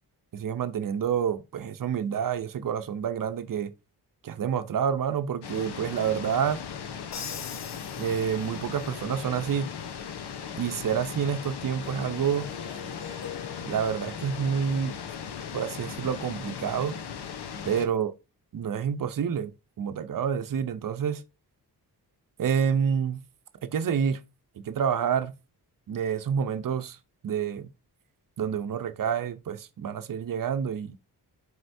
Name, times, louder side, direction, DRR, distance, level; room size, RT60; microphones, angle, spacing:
voice 1, 0.3-3.7 4.2-6.6 8.0-9.7 10.6-12.5 13.6-14.9 15.5-17.0 17.6-18.1 18.5-21.2 22.4-23.2 23.6-24.2 24.6-25.3 25.9-27.0 27.2-27.7 28.4-30.9, right 7 dB, 55° right, 0.7 m, -28 dB
sound 1, 5.4-17.9, left 7 dB, 80° left, 0.9 m, -38 dB
Crash cymbal, 7.1-8.8, left 7 dB, 45° left, 0.7 m, -41 dB
Harp, 11.8-16.8, left 8 dB, 60° left, 4.1 m, -46 dB
7.9 x 5.1 x 2.7 m
wide cardioid pair, 150°, 39 cm